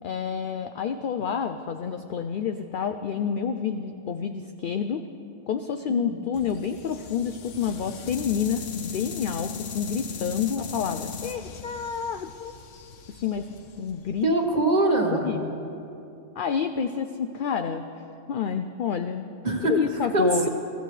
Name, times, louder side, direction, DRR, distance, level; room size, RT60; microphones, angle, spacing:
voice 1, 0.0-5.1 5.5-12.5 13.2-13.5 13.8-14.3 15.1-15.6 16.4-17.8 18.3-19.3 19.6-20.5, left 7 dB, 60° left, 8 dB, 0.6 m, -29 dB
voice 2, 5.9-6.3 14.2-15.3 19.4-19.7 20.1-20.5, right 2 dB, 35° right, 1 dB, 1.6 m, -23 dB
sound 1, 6.3-14.4, left 6 dB, 80° left, 1.1 m, -38 dB
23.5 x 14.5 x 3.3 m, 2.7 s
omnidirectional pair, 1.3 m